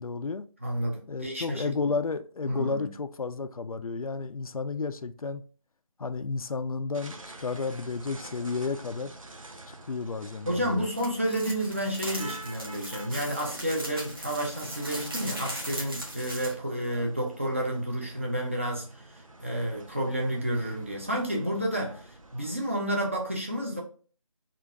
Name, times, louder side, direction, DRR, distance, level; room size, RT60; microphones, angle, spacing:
voice 1, 0.0-0.5 1.1-5.4 6.0-9.1 9.7-10.9, left 4 dB, 85° left, 0.4 m, -32 dB
voice 2, 0.6-1.7 2.5-2.9 10.5-23.8, right 1 dB, 25° right, 0.5 m, -30 dB
sound 1, 6.9-22.6, right 2 dB, 70° right, 0.7 m, -47 dB
sound 2, 10.9-16.5, right 1 dB, 40° right, 1.2 m, -39 dB
3.8 x 2.4 x 3.4 m
figure-of-eight pair, 165°, 18 cm